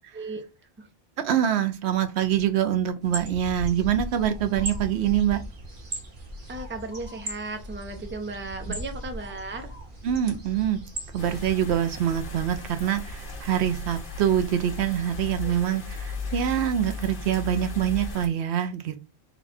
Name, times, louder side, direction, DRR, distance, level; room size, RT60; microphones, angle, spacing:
voice 1, 0.1-0.4 0.8-0.9 6.5-9.7 15.4-15.5, right 2 dB, 15° right, 0.5 m, -35 dB
voice 2, 1.2-5.4 10.0-10.8 11.1-15.8 16.3-19.0, right 10 dB, 90° right, 0.9 m, -25 dB
sound 1, 3.0-11.5, right 1 dB, 55° right, 1.1 m, -37 dB
sound 2, 11.2-18.3, left 2 dB, 55° left, 1.2 m, -36 dB
4.1 x 2.3 x 4.2 m
omnidirectional pair, 1.1 m